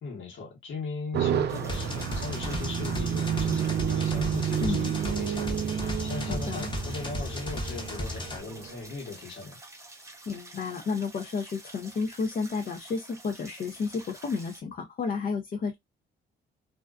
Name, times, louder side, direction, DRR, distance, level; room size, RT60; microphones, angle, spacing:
voice 1, 0.0-9.6, left 3 dB, 70° left, 1.2 m, -38 dB
sound 1, 1.1-8.9, right 9 dB, 60° right, 0.4 m, -30 dB
sound 2, 1.5-14.6, right 2 dB, 15° right, 0.7 m, -49 dB
sound 3, 1.7-8.4, left 1 dB, 25° left, 0.9 m, -35 dB
voice 2, 4.6-4.9 6.3-6.7 10.3-15.7, left 5 dB, 45° left, 0.6 m, -32 dB
2.5 x 2.2 x 2.3 m
cardioid pair, 90°, 20 cm